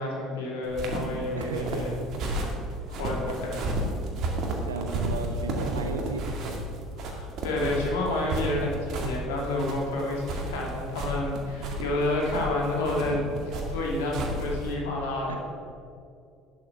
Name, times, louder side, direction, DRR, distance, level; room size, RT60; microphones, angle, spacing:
voice 1, 0.0-1.9 2.9-3.7 7.1-15.4, left 2 dB, 70° left, -1 dB, 2.6 m, -29 dB
sound 1, 0.7-14.7, right 1 dB, 50° right, 2.2 m, -32 dB
voice 2, 1.3-2.0 4.1-6.3 15.3-15.4, right 4 dB, 80° right, 6 dB, 0.7 m, -35 dB
11.5 x 9.2 x 5.7 m, 2.4 s
figure-of-eight pair, 60°, 0 cm